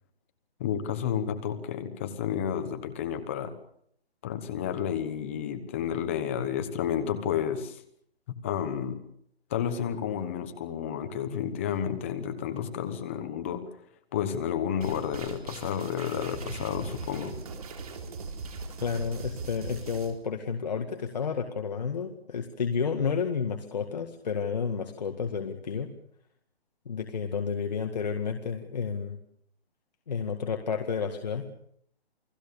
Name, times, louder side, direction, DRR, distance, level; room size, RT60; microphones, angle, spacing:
voice 1, 0.6-3.5 4.2-7.8 8.4-9.0 9.5-13.6 14.1-17.4, left 8 dB, 10° left, 9 dB, 1.1 m, -31 dB
sound 1, 14.8-20.1, right 4 dB, 35° right, 4.2 m, -40 dB
voice 2, 18.8-25.9 26.9-29.2 30.1-31.4, left 6 dB, 40° left, 5 dB, 2.0 m, -31 dB
29.0 x 20.0 x 7.0 m, 0.69 s
hypercardioid pair, 175°, 31 cm